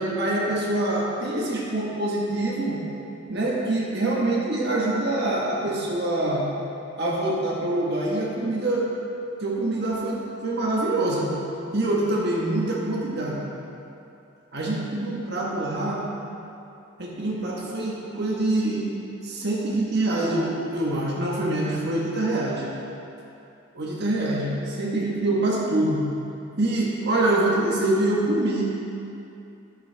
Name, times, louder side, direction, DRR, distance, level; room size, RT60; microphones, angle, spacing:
voice 1, 0.0-2.8 3.3-6.5 7.0-8.9 9.4-11.3 11.7-13.5 14.5-16.0 17.0-18.9 19.2-22.6 23.7-26.0 26.6-28.6, right 2 dB, 55° right, -4 dB, 1.5 m, -25 dB
12.0 x 7.9 x 3.5 m, 2.7 s
head